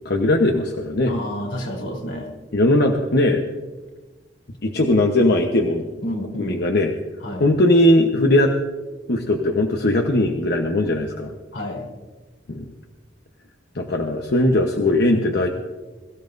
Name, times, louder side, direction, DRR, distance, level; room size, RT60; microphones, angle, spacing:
voice 1, 0.0-1.1 2.5-3.4 4.6-5.9 6.4-6.9 7.4-8.5 9.1-11.3 12.5-12.7 13.7-15.5, left 1 dB, 60° left, 2 dB, 1.1 m, -19 dB
voice 2, 1.1-2.3 6.0-6.6 7.2-7.5 11.5-11.9, left 1 dB, 85° left, -1 dB, 3.8 m, -29 dB
22.5 x 15.0 x 2.7 m, 1.3 s
head